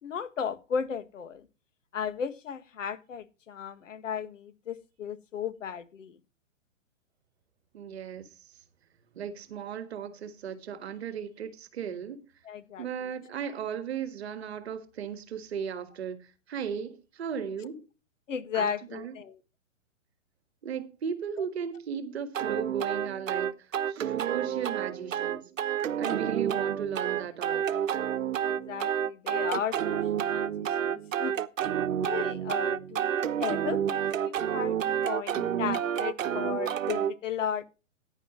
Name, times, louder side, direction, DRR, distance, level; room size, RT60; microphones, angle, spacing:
voice 1, 0.0-1.4 1.9-6.2 12.4-12.9 18.3-19.4 26.0-26.2 28.4-31.3 32.0-34.8 35.0-37.6, left 7 dB, 70° left, 1.7 m, -35 dB
voice 2, 7.7-8.5 9.1-12.2 12.8-17.8 18.5-19.1 20.6-25.5 26.0-27.6, right 7 dB, 50° right, 1.6 m, -36 dB
sound 1, 22.3-37.1, right 9 dB, 70° right, 1.1 m, -29 dB
15.5 x 10.0 x 3.0 m
hypercardioid pair, 170°, 40 cm